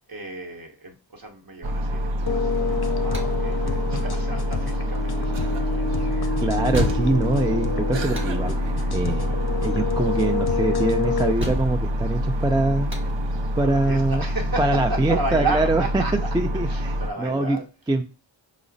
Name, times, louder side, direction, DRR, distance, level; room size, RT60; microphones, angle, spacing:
voice 1, 0.1-5.9 13.6-16.1 16.6-17.6, right 3 dB, 50° right, 1 dB, 1.0 m, -33 dB
sound 1, 1.6-17.1, equal, 70° right, 0.6 m, -26 dB
sound 2, 2.3-11.3, left 5 dB, 55° left, 0.5 m, -28 dB
sound 3, 3.1-15.8, right 1 dB, 25° right, 0.9 m, -37 dB
voice 2, 6.4-12.9 13.6-14.2 14.6-17.6 17.9-18.0, right 2 dB, 10° right, 5 dB, 0.3 m, -24 dB
4.9 x 2.1 x 3.9 m, 0.32 s
wide cardioid pair, 60°, 46 cm